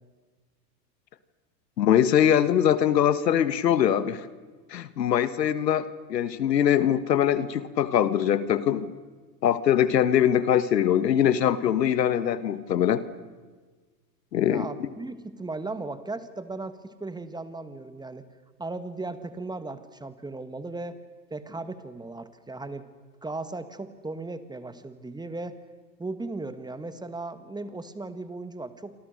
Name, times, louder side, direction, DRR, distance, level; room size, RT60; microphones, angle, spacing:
voice 1, 1.8-4.2 4.7-8.9 9.4-13.0 14.3-14.6, left 10 dB, 80° left, 14 dB, 1.6 m, -22 dB
voice 2, 14.4-18.2 18.6-21.0 21.3-22.9 23.2-25.6 26.0-28.9, right 3 dB, 10° right, 11 dB, 1.6 m, -36 dB
28.0 x 25.0 x 6.6 m, 1.4 s
hypercardioid pair, 105°, 49 cm